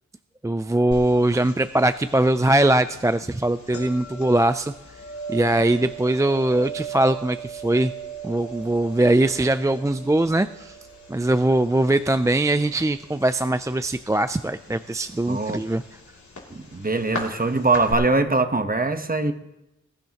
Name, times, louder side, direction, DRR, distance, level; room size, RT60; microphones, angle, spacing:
voice 1, 0.4-4.7 5.3-7.9 8.2-10.8 11.1-15.8, right 1 dB, 10° right, 0.4 m, -21 dB
sound 1, 0.9-17.9, right 3 dB, 70° left, 2.9 m, -39 dB
voice 2, 15.3-15.6 16.5-19.3, right 3 dB, 30° right, 1.0 m, -22 dB
21.0 x 12.0 x 2.9 m
wide cardioid pair, 70°, 30 cm